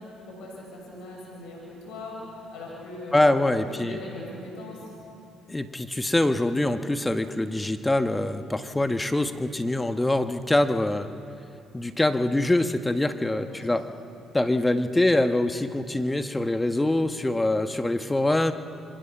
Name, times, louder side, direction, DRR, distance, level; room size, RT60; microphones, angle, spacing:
voice 1, 0.0-4.9 13.4-13.8, left 1 dB, 75° left, -2 dB, 7.2 m, -40 dB
voice 2, 3.1-4.0 5.5-11.1 11.7-13.9 14.3-18.5, left 1 dB, 15° left, 8 dB, 1.5 m, -24 dB
30.0 x 25.0 x 7.3 m, 2.7 s
supercardioid pair, 65°, 0 cm